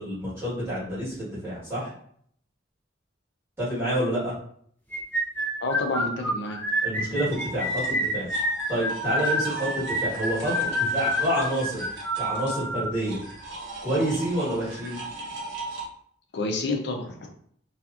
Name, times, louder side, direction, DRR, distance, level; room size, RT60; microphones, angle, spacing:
voice 1, 0.0-1.9 3.6-4.3 6.8-8.3 8.7-11.9 12.2-13.2 13.8-15.0, right 1 dB, 15° right, -10 dB, 1.4 m, -28 dB
sound 1, 4.9-12.9, equal, 10° left, 0.6 m, -27 dB
voice 2, 5.6-6.6 16.3-17.3, left 2 dB, 60° left, 2 dB, 0.5 m, -29 dB
sound 2, 7.3-15.9, right 2 dB, 70° right, 0.7 m, -38 dB
2.7 x 2.4 x 2.4 m, 0.62 s
head